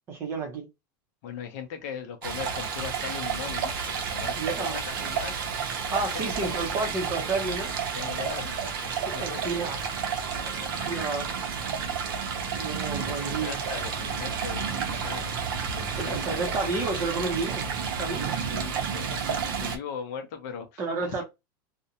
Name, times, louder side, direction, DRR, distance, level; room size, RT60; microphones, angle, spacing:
voice 1, 0.1-0.7 4.4-4.8 5.9-7.7 9.1-9.8 10.9-11.3 12.5-13.5 15.9-17.7 18.0-18.4 20.8-21.2, right 3 dB, 20° right, 0.6 m, -31 dB
voice 2, 1.2-6.9 7.9-9.5 10.1-11.1 12.4-16.5 17.2-17.3 18.5-21.2, left 7 dB, 50° left, 0.6 m, -40 dB
Stream, 2.2-19.8, right 6 dB, 85° right, 0.7 m, -31 dB
2.5 x 2.1 x 2.7 m
supercardioid pair, 180°, 12 cm